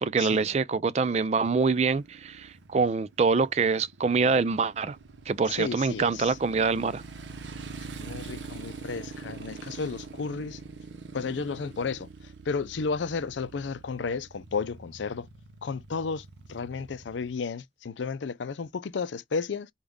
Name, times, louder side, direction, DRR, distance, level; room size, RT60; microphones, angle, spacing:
voice 1, 0.0-5.0 5.3-7.0, right 4 dB, 35° right, 0.3 m, -25 dB
Motorcycle, 1.6-17.3, right 4 dB, 85° right, 0.7 m, -44 dB
voice 2, 5.5-6.4 8.0-10.6 11.1-12.1 12.5-15.3 15.6-19.7, left 5 dB, 90° left, 0.5 m, -33 dB
5.2 x 2.3 x 3.5 m
head